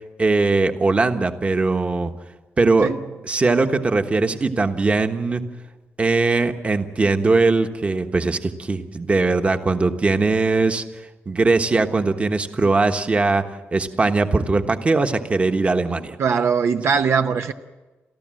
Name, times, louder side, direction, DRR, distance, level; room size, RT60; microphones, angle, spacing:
voice 1, 0.2-2.1 2.6-2.9 3.2-5.4 6.0-10.8 11.3-13.4 13.7-16.2, right 3 dB, 25° right, 1.3 m, -20 dB
voice 2, 16.2-17.5, right 6 dB, 65° right, 0.9 m, -20 dB
30.0 x 14.0 x 7.7 m
wide cardioid pair, 140°, 5 cm